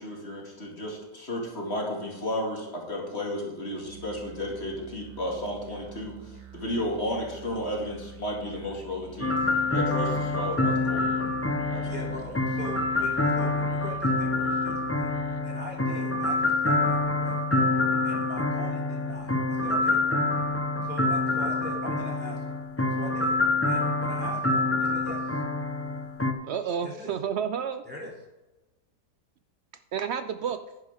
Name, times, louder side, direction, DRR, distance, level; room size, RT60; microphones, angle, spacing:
voice 1, 0.0-11.2 11.7-12.2, left 1 dB, 40° left, -1 dB, 2.5 m, -33 dB
Musical instrument, 3.8-15.5, right 7 dB, 55° right, 1.5 m, -48 dB
sound 1, 9.2-26.3, left 2 dB, 20° left, 0.3 m, -26 dB
voice 2, 11.9-15.1 15.4-17.4 18.0-20.3 20.8-22.6 22.9-23.4 23.7-25.4 26.8-27.1 27.8-28.1, equal, 5° right, -4 dB, 3.0 m, -41 dB
voice 3, 26.4-27.8 29.9-30.6, right 7 dB, 90° right, 10 dB, 0.5 m, -30 dB
10.5 x 10.0 x 3.6 m, 1.0 s
omnidirectional pair, 1.8 m